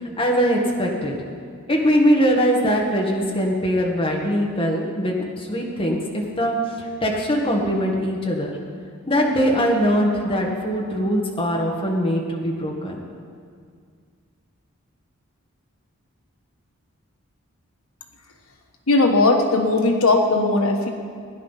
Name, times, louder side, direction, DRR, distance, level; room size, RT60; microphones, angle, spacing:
voice 1, 0.2-1.1 1.7-8.5 9.1-13.0, equal, 25° left, -1 dB, 1.9 m, -21 dB
voice 2, 18.9-20.9, left 2 dB, 85° left, 3 dB, 1.3 m, -18 dB
17.0 x 10.5 x 5.8 m, 2.1 s
head